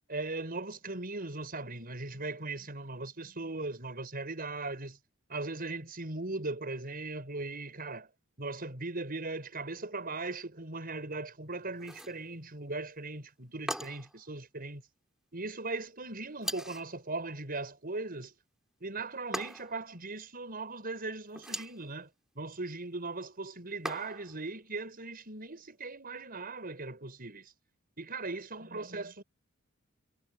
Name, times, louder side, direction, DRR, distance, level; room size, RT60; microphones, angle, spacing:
voice 1, 0.1-5.0 5.3-8.1 8.4-14.8 15.3-18.3 18.8-22.1 22.3-27.5 28.0-29.2, right 3 dB, 45° right, 6.4 m, -39 dB
sound 1, 11.8-12.2 13.7-14.2 16.4-16.9 19.3-19.9 21.3-21.8 23.8-24.4, equal, ahead, 7.3 m, -39 dB
head